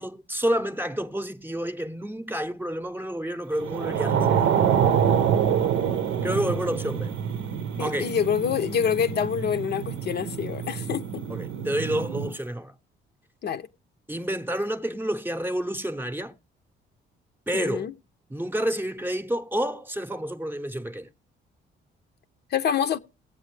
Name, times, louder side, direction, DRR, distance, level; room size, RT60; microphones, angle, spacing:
voice 1, 0.0-4.6 6.2-7.1 7.8-8.1 11.3-12.7 14.1-16.3 17.5-17.9 18.3-21.1, equal, 10° right, 0.8 m, -29 dB
sound 1, 3.6-12.3, right 8 dB, 75° right, 0.7 m, -26 dB
voice 2, 7.8-11.2 13.4-13.7 17.5-17.9 22.5-23.0, left 8 dB, 55° left, 0.6 m, -26 dB
19.5 x 8.1 x 3.2 m
cardioid pair, 90°, 20 cm